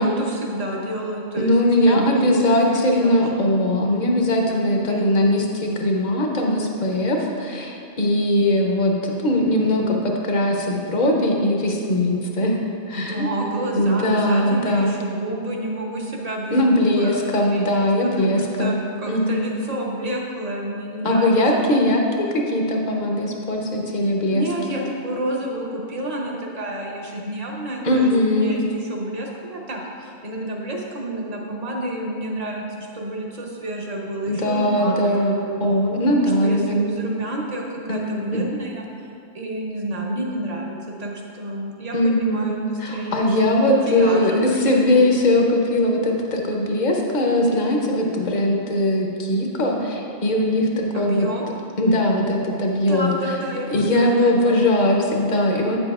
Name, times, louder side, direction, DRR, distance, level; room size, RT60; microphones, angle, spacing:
voice 1, 0.0-3.4 4.4-5.3 13.0-17.8 18.2-21.4 24.3-35.6 36.1-38.8 39.3-44.6 50.9-51.5 52.8-54.1 54.4-54.7, right 1 dB, 40° right, -1 dB, 0.8 m, -29 dB
voice 2, 1.4-12.6 12.9-13.3 13.8-15.0 16.5-18.8 19.1-19.4 21.0-24.5 27.8-28.5 34.3-36.8 37.9-38.0 38.3-38.4 41.9-51.3 51.8-53.1 53.7-55.8, left 1 dB, 50° left, 0 dB, 0.8 m, -20 dB
8.6 x 6.9 x 2.4 m, 2.5 s
omnidirectional pair, 1.1 m